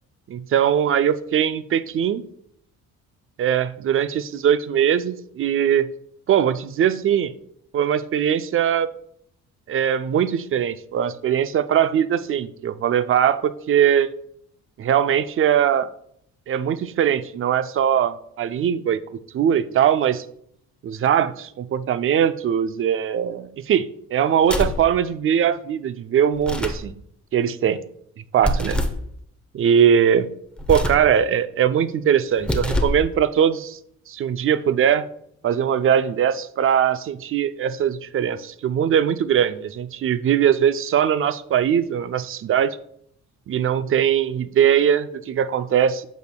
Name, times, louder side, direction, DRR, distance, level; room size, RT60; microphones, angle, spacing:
voice 1, 0.3-2.2 3.4-5.9 6.3-7.3 7.7-8.9 9.7-14.1 14.8-15.9 16.5-19.0 19.3-20.3 20.8-26.9 27.3-27.8 28.3-28.8 29.5-30.3 30.7-33.8 34.1-35.1 35.4-42.8 43.5-46.1, right 9 dB, 45° right, 14 dB, 0.4 m, -21 dB
sound 1, 24.4-24.9 26.3-26.9 28.4-29.0 30.6-31.1 32.3-33.1, left 1 dB, 5° left, 0.7 m, -24 dB
8.4 x 6.2 x 2.2 m, 0.70 s
cardioid pair, 90°, 30 cm